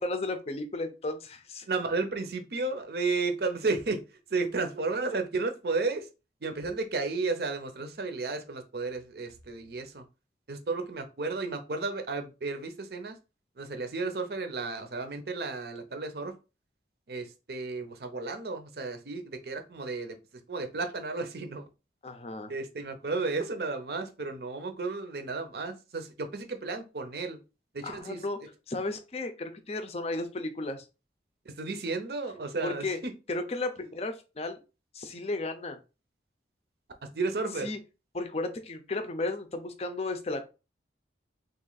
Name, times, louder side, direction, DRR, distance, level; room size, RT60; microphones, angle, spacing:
voice 1, 0.0-1.7 22.0-22.5 27.8-28.4 28.7-30.9 32.6-33.0 33.3-34.6 34.9-35.8 37.6-37.8 38.1-40.4, left 2 dB, 35° left, 7 dB, 0.5 m, -34 dB
voice 2, 1.7-4.0 4.3-6.1 6.4-10.0 10.5-13.2 13.6-16.3 17.1-20.2 20.5-21.6 22.5-27.4 27.7-28.2 31.5-33.1 37.0-37.7, right 3 dB, 55° right, 7 dB, 0.6 m, -33 dB
3.0 x 2.5 x 3.9 m, 0.30 s
head